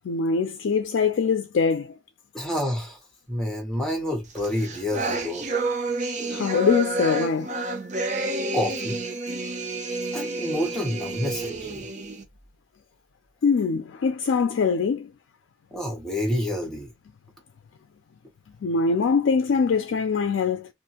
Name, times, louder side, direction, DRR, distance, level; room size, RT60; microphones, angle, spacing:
voice 1, 0.0-2.0 6.3-7.5 13.4-15.1 18.6-20.7, left 5 dB, 75° left, 0.4 m, -23 dB
voice 2, 2.3-3.0 3.3-5.4 8.5-9.0 10.1-11.9 15.7-16.9, left 1 dB, 5° left, 1.0 m, -28 dB
sound 1, 4.4-12.2, right 2 dB, 40° right, 0.7 m, -29 dB
2.6 x 2.5 x 2.7 m
head